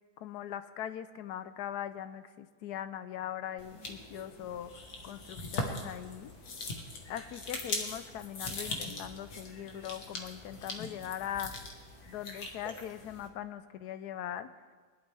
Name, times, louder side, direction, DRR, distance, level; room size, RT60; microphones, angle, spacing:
voice 1, 0.2-4.7 5.0-6.3 7.1-11.5 12.1-14.5, left 10 dB, 75° left, 12 dB, 0.9 m, -40 dB
sound 1, 3.6-13.3, left 3 dB, 50° left, 1.9 m, -41 dB
21.0 x 11.5 x 3.4 m, 1.5 s
omnidirectional pair, 2.1 m